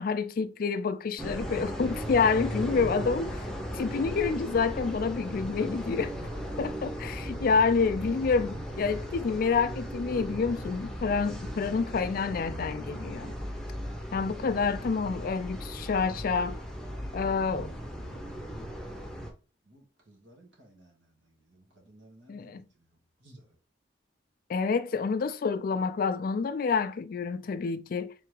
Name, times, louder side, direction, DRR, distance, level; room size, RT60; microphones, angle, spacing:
voice 1, 0.0-3.3 3.7-6.1 6.6-13.3 14.1-16.6 17.1-17.7 22.3-22.6 24.5-28.1, left 5 dB, 50° left, 0.4 m, -28 dB
sound 1, 1.2-19.3, equal, 5° left, 0.7 m, -37 dB
voice 2, 2.7-3.0 15.8-16.2 16.8-19.3 19.7-22.9 23.2-23.6, right 1 dB, 85° right, 1.7 m, -56 dB
3.9 x 3.3 x 3.2 m
head